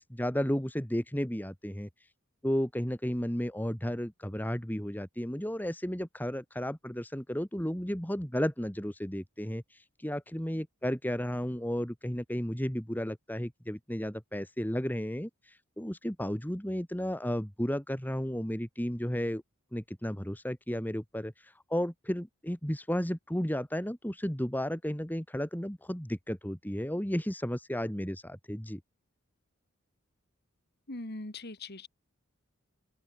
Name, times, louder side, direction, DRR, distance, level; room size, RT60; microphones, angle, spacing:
voice 1, 0.0-1.9 2.4-19.4 19.7-28.8, equal, 10° left, 2.2 m, -33 dB
voice 2, 30.9-31.9, left 2 dB, 50° left, 2.0 m, -40 dB
open air
head